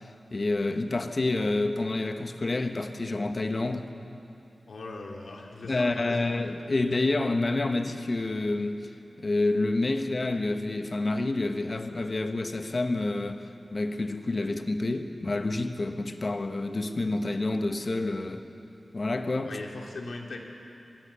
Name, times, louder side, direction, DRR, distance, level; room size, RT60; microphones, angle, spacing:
voice 1, 0.0-3.9 5.6-8.9 9.2-13.4 13.7-18.4 18.9-19.6, left 2 dB, 45° left, 7 dB, 1.4 m, -28 dB
voice 2, 4.7-6.3 19.4-20.4, left 2 dB, 85° left, 1 dB, 2.8 m, -39 dB
25.0 x 20.5 x 7.0 m, 2.7 s
wide cardioid pair, 95°, 0 cm